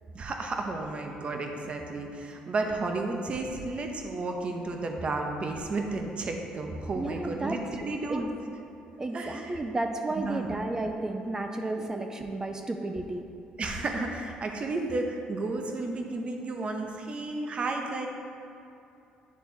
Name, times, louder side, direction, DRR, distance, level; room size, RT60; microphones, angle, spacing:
voice 1, 0.1-8.2 9.1-9.6 10.2-10.5 11.8-11.9 13.6-18.1, right 3 dB, 40° right, 3 dB, 0.8 m, -32 dB
voice 2, 6.9-7.6 8.1-8.3 9.0-13.3, right 2 dB, 20° right, 4 dB, 0.5 m, -32 dB
9.4 x 3.4 x 4.3 m, 2.7 s
cardioid pair, 90°, 3 cm